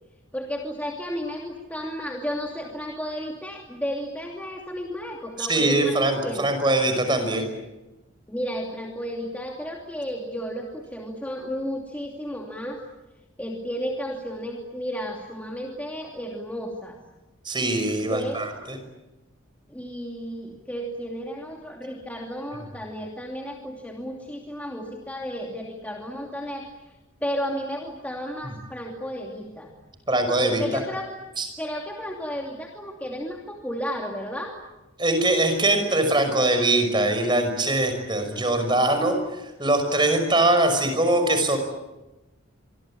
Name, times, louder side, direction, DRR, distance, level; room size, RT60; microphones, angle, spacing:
voice 1, 0.3-6.6 8.3-12.8 13.4-17.0 18.1-18.5 19.7-26.9 27.2-29.7 30.4-31.1 31.6-34.6, equal, 5° left, 0 dB, 2.7 m, -33 dB
voice 2, 5.4-7.4 17.4-18.5 30.1-30.8 31.4-31.5 35.0-41.6, right 1 dB, 20° right, 7 dB, 5.7 m, -22 dB
26.5 x 24.5 x 8.8 m, 1.0 s
head